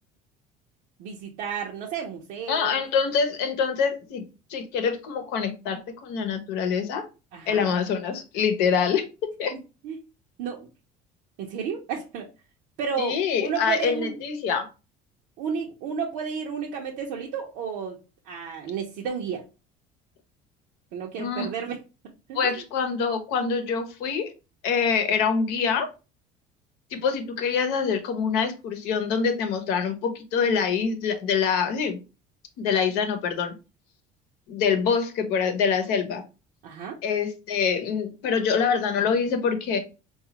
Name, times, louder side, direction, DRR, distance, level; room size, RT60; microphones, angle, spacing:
voice 1, 1.0-2.8 7.3-7.7 9.8-10.0 10.4-10.7 11.4-12.3 12.8-14.1 15.4-18.0 18.3-19.4 20.9-21.8 22.3-22.6 36.6-37.0, right 6 dB, 75° right, 0.6 m, -32 dB
voice 2, 2.5-4.2 4.5-7.1 7.5-9.5 13.0-14.7 21.2-21.5 22.3-24.3 24.6-25.9 26.9-32.0 32.6-33.5 34.5-36.2 37.0-39.8, left 6 dB, 80° left, 0.8 m, -25 dB
4.0 x 2.4 x 2.8 m
cardioid pair, 120°, 17 cm